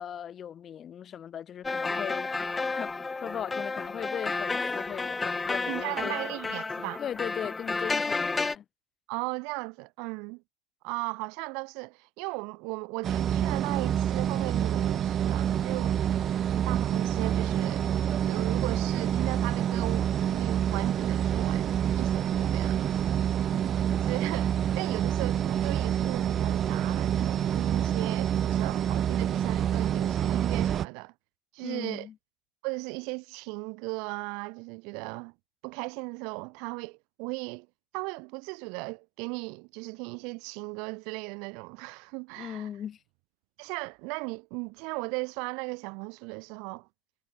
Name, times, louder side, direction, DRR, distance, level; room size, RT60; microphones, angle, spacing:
voice 1, 0.0-6.2 7.0-8.6 31.6-32.1 42.4-43.0, left 9 dB, 55° left, 2.3 m, -38 dB
sound 1, 1.6-8.6, left 3 dB, 25° left, 4.1 m, -31 dB
voice 2, 5.7-7.0 9.1-10.4 10.8-16.2 16.6-22.9 24.0-31.1 31.5-32.1 32.6-35.3 35.6-37.7 37.9-42.7 43.6-46.9, right 32 dB, 80° right, 3.4 m, -37 dB
sound 2, 13.0-30.9, right 10 dB, 55° right, 1.0 m, -27 dB
hypercardioid pair, 65°, 0 cm